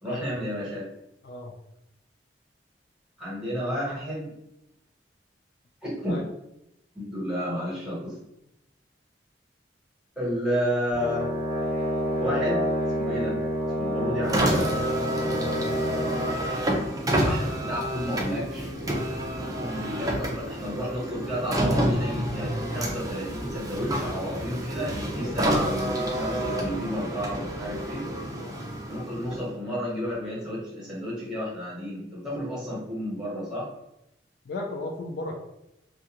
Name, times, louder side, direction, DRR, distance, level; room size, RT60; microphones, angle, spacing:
voice 1, 0.0-0.8 3.2-4.3 5.8-6.2 6.9-8.1 10.2-11.3 12.2-12.6 12.9-13.4 13.8-14.6 17.2-18.7 19.4-28.0 28.9-33.7, equal, 5° right, -8 dB, 1.1 m, -31 dB
Brass instrument, 10.9-16.4, equal, 35° left, 0.9 m, -28 dB
Car, 14.2-29.6, right 1 dB, 20° right, 0.4 m, -29 dB
voice 2, 15.3-15.6 25.2-25.4 28.3-28.6 34.5-35.4, left 2 dB, 65° left, 1 dB, 0.4 m, -35 dB
2.3 x 2.2 x 2.8 m, 0.85 s
head